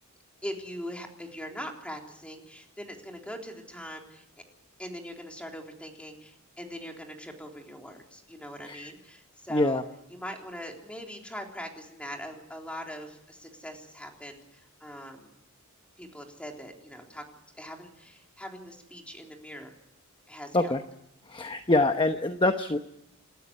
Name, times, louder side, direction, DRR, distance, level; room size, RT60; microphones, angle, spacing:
voice 1, 0.4-4.3 4.8-9.8 10.1-15.3 16.0-17.2 17.5-19.7 20.3-20.7, equal, 5° left, 2 dB, 3.6 m, -41 dB
voice 2, 9.5-9.8 20.5-20.8 21.3-22.8, left 2 dB, 20° left, 7 dB, 1.0 m, -25 dB
28.5 x 13.0 x 9.7 m, 0.82 s
head